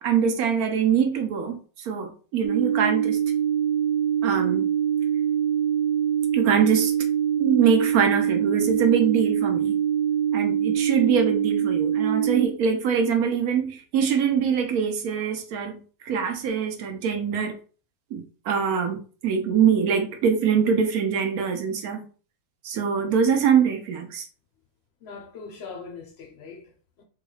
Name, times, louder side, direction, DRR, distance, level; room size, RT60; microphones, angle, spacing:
voice 1, 0.0-3.2 4.2-4.7 6.3-6.9 7.4-9.8 10.3-17.6 18.1-22.0 22.6-24.3, right 7 dB, 75° right, 1.1 m, -23 dB
sound 1, 2.4-12.4, right 9 dB, 35° right, 0.9 m, -24 dB
voice 2, 25.0-27.0, left 5 dB, 65° left, 0.6 m, -41 dB
3.8 x 2.3 x 3.1 m
omnidirectional pair, 1.6 m